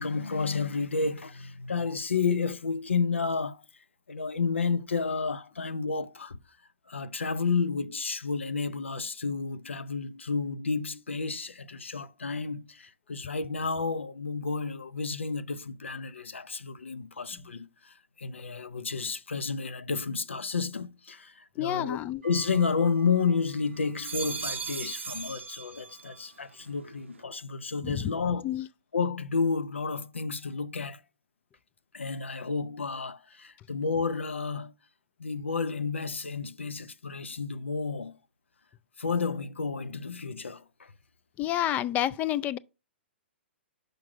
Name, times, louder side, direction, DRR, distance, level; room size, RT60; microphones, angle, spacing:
voice 1, 0.0-3.6 4.1-6.4 6.9-22.0 22.2-28.4 28.9-31.0 31.9-34.7 35.2-38.1 39.0-40.9, left 5 dB, 90° left, 0.6 m, -31 dB
voice 2, 21.6-22.2 27.8-28.1 28.4-28.6 41.4-42.6, left 12 dB, 25° left, 0.3 m, -29 dB
sound 1, 22.2-23.4 23.8-26.2 26.6-27.2, right 5 dB, 90° right, 0.5 m, -39 dB
5.9 x 5.2 x 4.7 m
hypercardioid pair, 125°, 6 cm